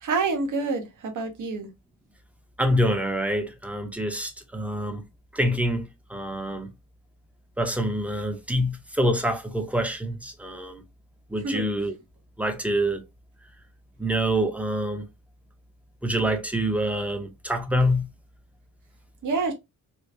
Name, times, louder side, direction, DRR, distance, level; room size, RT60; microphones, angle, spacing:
voice 1, 0.0-1.7 11.4-11.7 19.2-19.5, right 4 dB, 60° right, 0.9 m, -27 dB
voice 2, 2.6-5.0 5.3-6.7 7.6-10.8 11.3-11.9 12.4-13.0 14.0-15.0 16.0-18.0, equal, 5° right, 0.6 m, -26 dB
3.1 x 2.4 x 3.2 m
wide cardioid pair, 130°, 35 cm